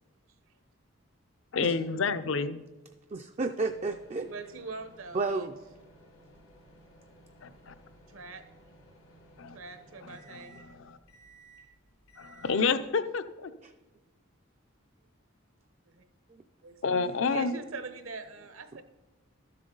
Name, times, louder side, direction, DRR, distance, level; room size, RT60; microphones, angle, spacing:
voice 1, 1.5-2.6 7.4-7.7 9.4-9.6 10.0-11.0 12.2-13.5 16.8-17.5, left 4 dB, 65° left, 12 dB, 0.5 m, -29 dB
voice 2, 3.1-4.3 5.1-5.6 13.6-13.7, right 3 dB, 30° right, 6 dB, 0.3 m, -31 dB
sound 1, 3.7-12.9, right 2 dB, 90° left, 3.5 m, -57 dB
voice 3, 4.2-5.5 8.1-8.4 9.5-10.6 15.9-16.0 16.6-16.8 17.3-18.8, right 3 dB, 75° right, 9 dB, 1.0 m, -42 dB
12.5 x 7.4 x 3.9 m, 1.1 s
head